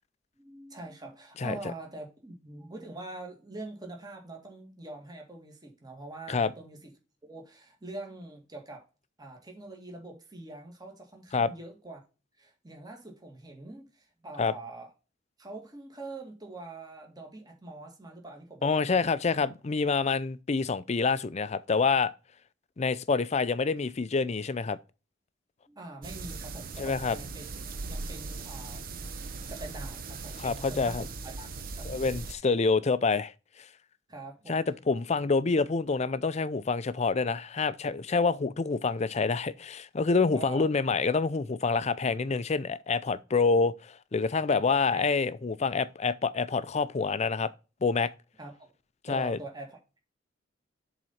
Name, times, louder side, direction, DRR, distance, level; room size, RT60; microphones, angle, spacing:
voice 1, 0.4-6.9 7.2-8.8 9.2-12.0 12.4-14.9 15.4-19.1 25.7-27.5 27.9-29.1 29.5-31.1 31.4-31.5 31.8-32.1 34.1-34.6 40.3-40.7 44.5-45.0 48.4-48.7 49.1-50.0, right 2 dB, 20° right, 1.9 m, -44 dB
voice 2, 18.6-22.1 22.8-24.8 26.8-27.2 30.4-31.0 31.8-33.3 34.5-47.5 47.8-48.1 49.0-49.4, left 4 dB, 35° left, 0.5 m, -27 dB
sound 1, 26.0-32.3, right 3 dB, 50° right, 0.7 m, -39 dB
7.7 x 4.0 x 5.7 m
head